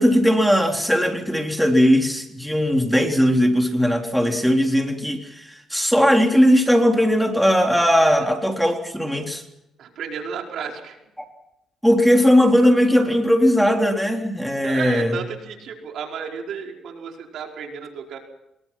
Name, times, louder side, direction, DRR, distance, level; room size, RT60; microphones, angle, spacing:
voice 1, 0.0-9.4 11.8-15.1, equal, ahead, 3 dB, 3.7 m, -18 dB
voice 2, 9.8-11.0 14.6-18.2, right 6 dB, 75° right, 1 dB, 5.0 m, -33 dB
26.0 x 22.0 x 6.0 m, 0.88 s
cardioid pair, 90°, 0 cm